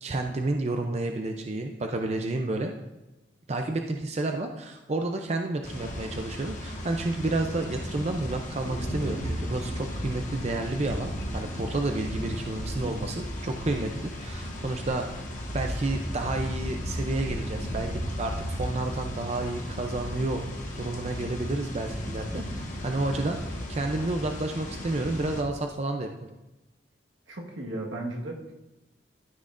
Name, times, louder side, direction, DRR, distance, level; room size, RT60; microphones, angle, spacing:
voice 1, 0.0-2.7 3.5-15.0 15.5-20.4 20.8-22.4 22.8-23.4 23.7-26.3, right 2 dB, 35° right, 4 dB, 0.5 m, -30 dB
sound 1, 5.6-25.4, equal, 45° left, 1.4 m, -35 dB
voice 2, 27.3-28.5, right 1 dB, 85° right, 0 dB, 1.5 m, -36 dB
13.0 x 6.1 x 2.5 m, 1.0 s
head